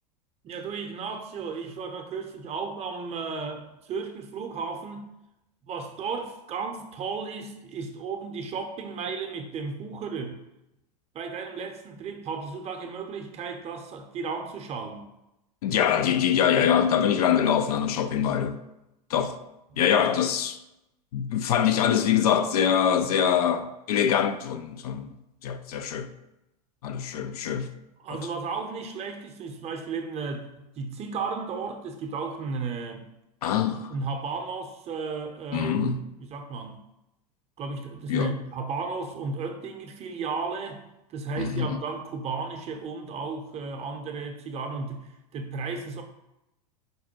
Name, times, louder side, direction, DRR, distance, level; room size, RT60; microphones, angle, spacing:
voice 1, 0.4-5.0 5.7-10.4 11.1-15.0 28.0-30.5 30.8-33.0 33.9-36.8 37.6-40.8 41.1-45.0 45.3-46.0, right 4 dB, 30° right, 0.6 m, -34 dB
voice 2, 15.6-18.6 19.1-19.4 19.8-20.6 21.1-25.1 25.4-26.1 26.8-27.7 28.1-28.2 33.4-33.9 35.5-36.0 38.1-38.3 41.4-41.7, left 8 dB, 70° left, 0.4 m, -24 dB
5.2 x 2.2 x 4.3 m
hypercardioid pair, 90°, 20 cm